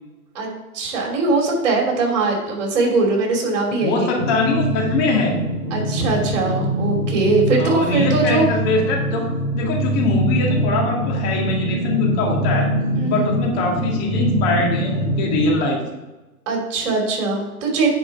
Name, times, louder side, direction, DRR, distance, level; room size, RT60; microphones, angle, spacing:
voice 1, 0.7-4.2 5.7-8.5 13.0-13.3 16.5-17.9, right 3 dB, 50° right, 1 dB, 2.9 m, -21 dB
voice 2, 3.8-5.4 7.6-9.3 9.5-12.7 13.1-15.8, left 3 dB, 40° left, 0 dB, 2.0 m, -22 dB
sound 1, 4.2-15.5, right 1 dB, 5° right, 0.3 m, -23 dB
10.0 x 4.5 x 4.6 m, 1.1 s
hypercardioid pair, 125°, 45 cm